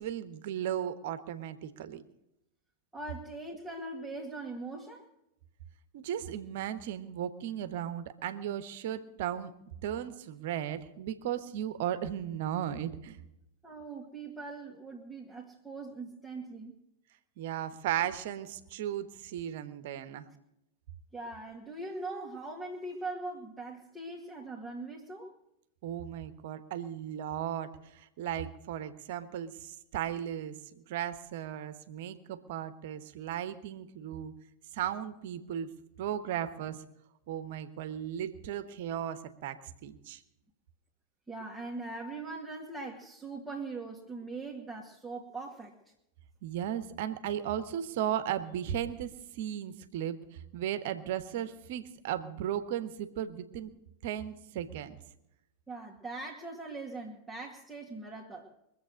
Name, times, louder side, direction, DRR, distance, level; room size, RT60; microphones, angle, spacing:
voice 1, 0.0-2.0 5.9-9.5 9.8-13.2 17.4-20.3 25.8-34.3 34.7-35.7 36.0-36.8 37.3-40.2 46.4-50.2 50.5-53.7 54.0-55.0, right 10 dB, 50° right, 12 dB, 1.2 m, -36 dB
voice 2, 2.9-5.1 13.6-16.8 21.1-25.4 41.3-45.8 55.7-58.5, right 3 dB, ahead, -6 dB, 2.2 m, -41 dB
23.5 x 7.9 x 6.4 m, 0.83 s
figure-of-eight pair, 90°, 0 cm